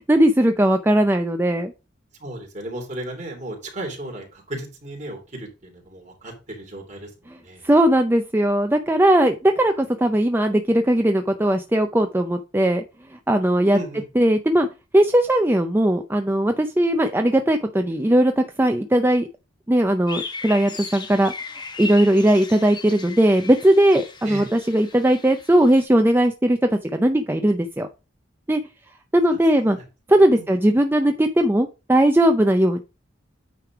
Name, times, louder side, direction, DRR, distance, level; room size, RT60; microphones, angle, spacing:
voice 1, 0.0-1.7 7.6-12.8 13.3-13.8 14.2-14.7 14.9-19.3 19.7-21.3 21.8-27.9 28.5-28.6 29.1-29.8 30.1-32.8, right 1 dB, 10° right, 6 dB, 0.5 m, -18 dB
voice 2, 2.2-7.7 13.7-14.1 24.2-24.5 29.6-29.8 30.3-30.4, right 1 dB, 40° right, 1 dB, 3.0 m, -35 dB
sound 1, 20.1-25.9, left 3 dB, 25° left, 1.2 m, -37 dB
9.2 x 3.3 x 5.9 m, 0.29 s
head